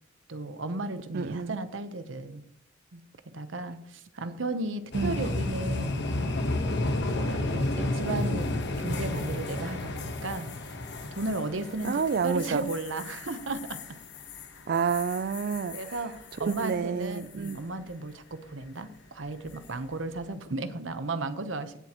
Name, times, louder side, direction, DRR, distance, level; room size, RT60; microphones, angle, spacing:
voice 1, 0.3-2.4 2.9-3.0 3.3-6.6 7.1-10.5 11.1-13.8 15.7-16.1 16.4-21.7, right 2 dB, 80° right, 0.9 m, -35 dB
voice 2, 1.1-1.6 4.9-5.2 11.8-12.7 14.7-15.8 16.4-17.6, right 6 dB, 55° right, 0.4 m, -29 dB
sound 1, 4.9-16.8 17.1-17.5 19.5-19.8, left 2 dB, 65° left, 1.2 m, -32 dB
16.0 x 7.4 x 3.0 m
head